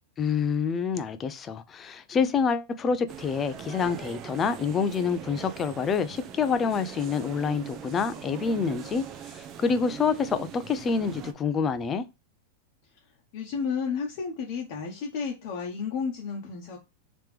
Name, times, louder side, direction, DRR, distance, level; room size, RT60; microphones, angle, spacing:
voice 1, 0.2-12.0, left 5 dB, 25° left, 0.4 m, -27 dB
sound 1, 3.1-11.3, right 8 dB, 35° right, 0.6 m, -41 dB
voice 2, 13.3-16.8, left 6 dB, 50° left, 0.9 m, -32 dB
3.4 x 3.0 x 3.3 m
hypercardioid pair, 135°, 0 cm